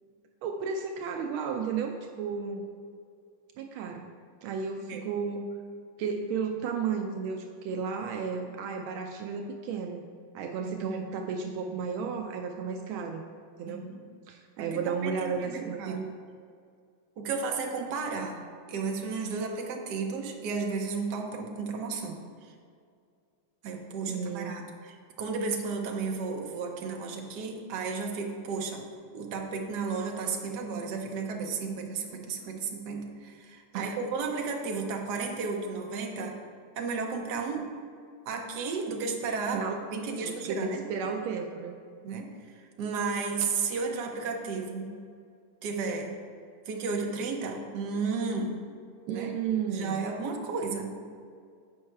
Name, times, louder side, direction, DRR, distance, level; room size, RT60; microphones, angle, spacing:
voice 1, 0.4-2.7 3.6-4.1 4.4-5.4 6.0-10.0 10.3-13.2 13.6-13.9 14.3-16.1 24.1-24.7 33.7-34.0 39.5-39.8 40.2-41.8 49.1-50.0, right 6 dB, 80° right, 4 dB, 1.4 m, -33 dB
voice 2, 10.6-11.1 13.7-14.0 14.6-16.0 17.2-18.4 18.7-22.5 23.6-28.9 29.1-36.4 36.8-37.7 38.3-40.8 42.0-45.0 45.6-46.2 46.7-48.7 49.1-49.4 49.7-51.0, right 4 dB, 60° right, 2 dB, 1.3 m, -33 dB
7.7 x 5.4 x 4.6 m, 2.2 s
omnidirectional pair, 2.3 m